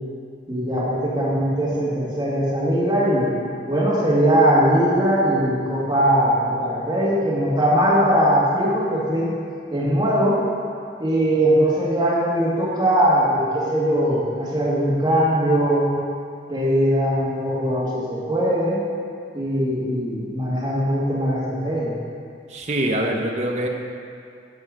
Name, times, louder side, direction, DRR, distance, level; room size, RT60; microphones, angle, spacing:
voice 1, 0.5-3.3 3.7-9.4 9.7-10.4 11.0-15.9 16.5-18.8 19.3-21.9, equal, 25° right, -7 dB, 2.1 m, -20 dB
voice 2, 22.5-23.7, right 1 dB, 40° right, 1 dB, 0.8 m, -24 dB
10.0 x 4.6 x 6.5 m, 2.4 s
head